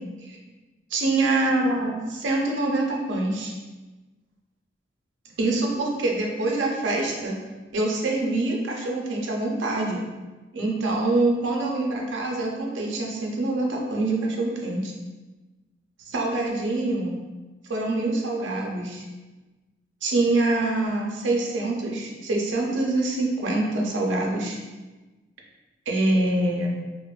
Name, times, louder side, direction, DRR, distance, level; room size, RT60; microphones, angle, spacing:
voice 1, 0.9-3.5 5.4-7.3 7.7-10.0 10.5-14.9 16.1-17.1 17.7-19.0 20.0-24.6 25.9-26.7, right 2 dB, 80° right, -1 dB, 0.5 m, -25 dB
2.9 x 2.0 x 2.3 m, 1.2 s
head